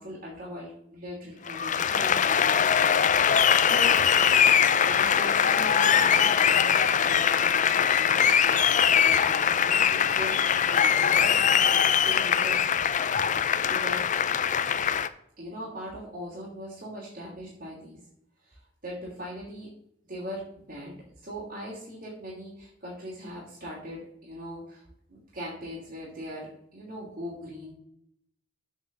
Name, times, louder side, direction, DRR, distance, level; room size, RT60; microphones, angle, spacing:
voice 1, 0.0-4.0 4.6-12.7 13.1-14.0 15.4-18.0 18.4-19.7 20.1-24.8 25.1-27.7, equal, 50° right, -5 dB, 3.1 m, -40 dB
Applause, 1.5-15.1, left 8 dB, 45° left, 0.5 m, -22 dB
7.4 x 5.9 x 6.6 m, 0.73 s
head